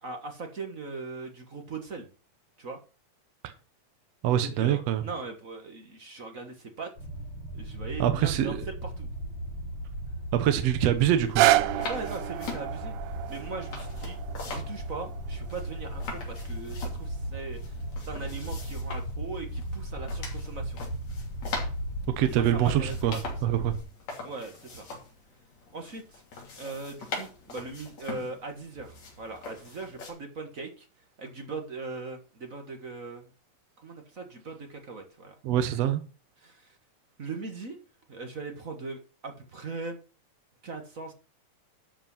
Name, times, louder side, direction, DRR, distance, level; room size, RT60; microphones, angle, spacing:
voice 1, 0.0-2.1 2.6-2.8 4.2-6.9 7.5-9.1 11.9-12.9 13.3-14.2 14.4-20.8 22.2-22.9 23.2-23.5 24.2-24.9 25.7-26.2 26.6-30.9 31.2-33.3 33.8-35.3 36.4-36.8 37.2-37.8 38.1-40.0 40.6-41.1, right 3 dB, 40° right, 1.2 m, -40 dB
voice 2, 4.2-5.0 8.0-8.6 10.3-11.5 22.2-23.2 23.4-23.7 35.4-36.0, right 11 dB, 65° right, 1.9 m, -24 dB
sound 1, 7.0-23.8, right 1 dB, 40° left, 3.3 m, -36 dB
sound 2, 11.0-30.1, left 4 dB, 60° left, 4.2 m, -43 dB
sound 3, 11.1-17.2 17.8-17.9, right 15 dB, 85° right, 2.1 m, -29 dB
12.5 x 5.2 x 5.6 m
omnidirectional pair, 3.5 m